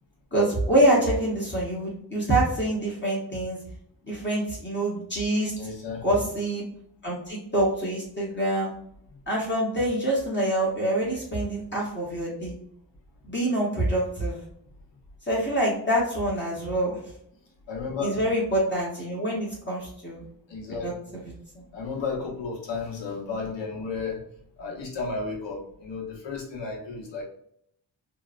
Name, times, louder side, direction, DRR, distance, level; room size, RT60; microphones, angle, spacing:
voice 1, 0.3-3.6 4.1-5.5 6.0-6.6 7.0-8.7 9.3-12.5 13.2-14.4 15.3-16.9 18.0-20.2 20.8-21.6, right 1 dB, 25° left, -5 dB, 0.9 m, -26 dB
voice 2, 5.6-6.3 9.1-9.2 17.7-18.1 20.5-21.1 21.7-24.2 24.6-27.2, left 4 dB, 70° left, -2 dB, 1.0 m, -33 dB
2.8 x 2.2 x 2.4 m, 0.70 s
cardioid pair, 95°, 45 cm